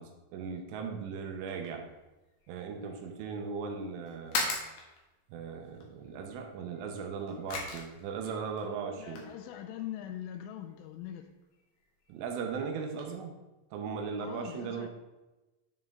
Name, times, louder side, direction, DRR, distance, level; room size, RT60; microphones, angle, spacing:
voice 1, 0.0-1.9 2.5-4.6 5.3-9.3 12.1-13.3 13.7-14.9, right 5 dB, 80° right, 3 dB, 3.2 m, -38 dB
sound 1, 1.3-13.1, left 3 dB, 65° left, 2.5 m, -43 dB
voice 2, 9.0-11.3 14.2-14.9, left 11 dB, 85° left, 7 dB, 2.9 m, -42 dB
10.5 x 5.5 x 3.7 m, 1.1 s
omnidirectional pair, 5.8 m